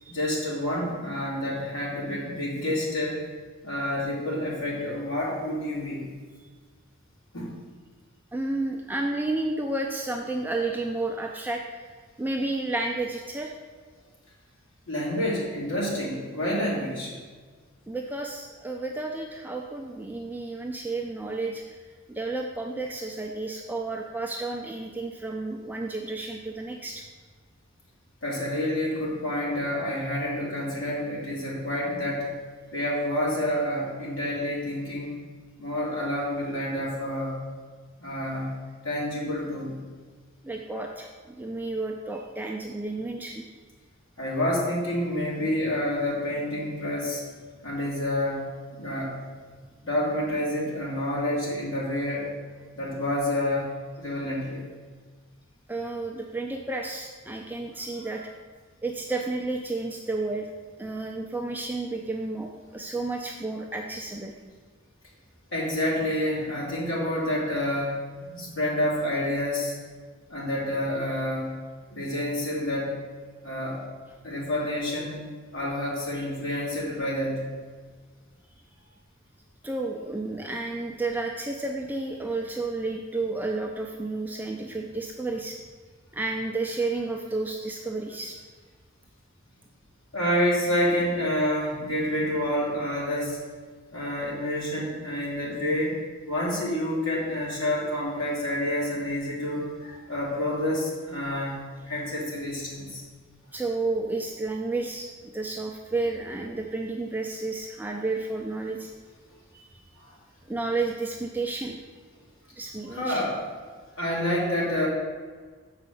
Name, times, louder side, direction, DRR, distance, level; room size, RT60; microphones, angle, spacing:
voice 1, 0.1-3.2 3.6-6.0 7.3-7.5 14.9-17.1 28.2-32.3 32.7-35.2 35.6-37.3 38.0-38.5 38.8-39.7 44.2-47.2 47.6-48.4 48.8-49.1 49.8-52.3 52.8-53.7 54.0-54.6 65.5-68.0 68.3-69.7 70.3-71.5 71.9-72.9 73.4-73.8 74.2-75.2 75.5-77.4 90.1-93.4 93.9-95.9 96.3-101.6 101.9-103.0 110.0-110.1 112.9-113.4 114.0-114.9, left 1 dB, 60° left, -5 dB, 2.7 m, -28 dB
voice 2, 8.3-11.8 12.2-13.5 17.9-21.8 22.1-27.0 40.4-41.1 41.4-43.5 55.7-58.2 58.8-60.5 60.8-64.3 76.1-76.6 79.6-85.6 86.1-88.4 103.5-108.9 109.5-109.8 110.5-111.8 112.6-113.2, right 2 dB, 10° right, 1 dB, 0.4 m, -31 dB
6.8 x 5.0 x 6.9 m, 1.5 s
head